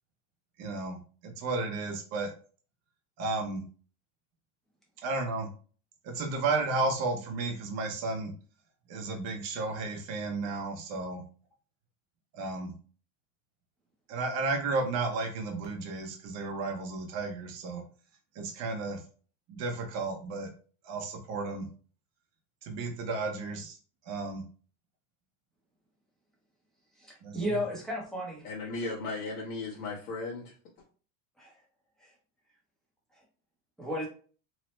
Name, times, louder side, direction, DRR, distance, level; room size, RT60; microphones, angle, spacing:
voice 1, 0.6-2.3 3.2-3.6 5.0-5.5 6.0-8.3 8.9-11.2 12.3-12.7 14.1-17.8 18.4-19.0 19.5-20.5 20.8-21.7 22.6-23.8 24.1-24.4 27.2-27.4, right 3 dB, 35° right, 4 dB, 0.7 m, -33 dB
voice 2, 27.0-28.4 31.4-31.6 32.0-32.1 33.1-33.2 33.8-34.1, equal, ahead, -3 dB, 0.7 m, -34 dB
voice 3, 28.4-30.5, left 3 dB, 75° left, -6 dB, 1.2 m, -36 dB
3.1 x 2.1 x 3.1 m, 0.40 s
supercardioid pair, 155°, 44 cm